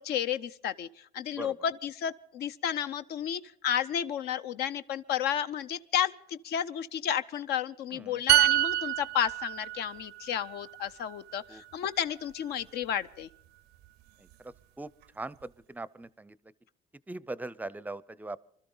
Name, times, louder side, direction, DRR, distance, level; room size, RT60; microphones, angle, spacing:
voice 1, 0.0-13.3, left 9 dB, 70° left, 0.6 m, -32 dB
sound 1, 8.3-11.9 12.2-12.5, right 15 dB, 80° right, 0.6 m, -28 dB
voice 2, 15.2-16.4 17.1-18.4, right 2 dB, 10° right, 0.5 m, -40 dB
24.5 x 13.0 x 3.9 m
cardioid pair, 110°, 17 cm